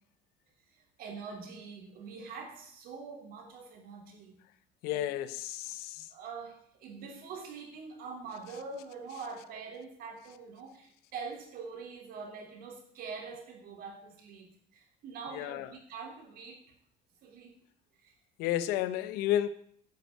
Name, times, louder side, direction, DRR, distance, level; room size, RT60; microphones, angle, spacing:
voice 1, 0.7-4.4 4.9-5.1 6.1-16.6 17.2-17.6 18.0-18.1, right 5 dB, 70° right, 3.4 m, -44 dB
voice 2, 4.8-6.1 15.3-15.7 18.4-19.5, left 12 dB, 90° left, 0.9 m, -31 dB
11.0 x 6.8 x 8.3 m
cardioid pair, 110°, 16 cm